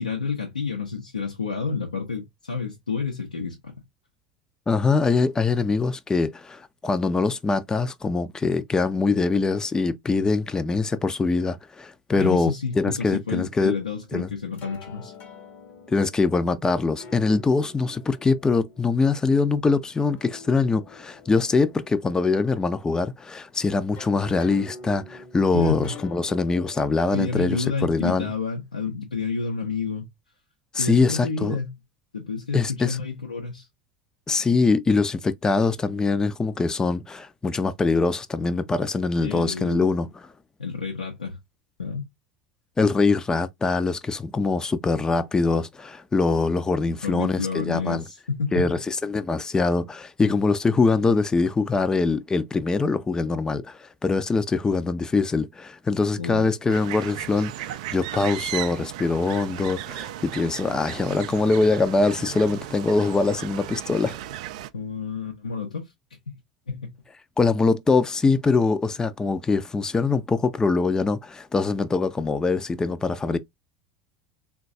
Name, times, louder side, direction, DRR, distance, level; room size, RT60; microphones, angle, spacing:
voice 1, 0.0-3.7 12.1-15.1 25.5-26.0 27.1-30.1 30.8-31.8 32.1-33.7 39.2-39.9 40.6-41.4 41.8-42.0 46.9-48.7 56.2-56.5 64.7-65.9 66.3-66.4 66.7-66.9, left 5 dB, 85° left, 0.6 m, -30 dB
voice 2, 4.7-13.7 14.1-14.3 15.9-28.3 30.7-31.6 32.5-33.0 34.3-40.2 42.8-48.0 48.5-64.2 67.4-73.4, left 4 dB, 15° left, 0.4 m, -23 dB
sound 1, 14.4-26.8, left 4 dB, 45° left, 0.8 m, -47 dB
sound 2, 56.7-64.7, right 12 dB, 65° right, 0.3 m, -35 dB
3.7 x 2.3 x 2.6 m
figure-of-eight pair, 75°, 4 cm